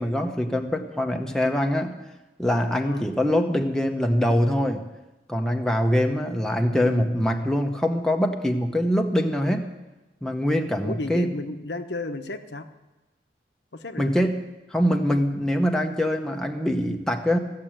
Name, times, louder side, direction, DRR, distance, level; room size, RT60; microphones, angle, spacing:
voice 1, 0.0-1.9 2.4-4.8 5.3-9.7 10.2-11.3 14.0-14.3 14.7-17.4, equal, 5° left, 3 dB, 0.9 m, -23 dB
voice 2, 10.8-12.7 13.7-14.2, left 2 dB, 75° left, 7 dB, 1.0 m, -33 dB
15.5 x 7.5 x 8.9 m, 1.1 s
head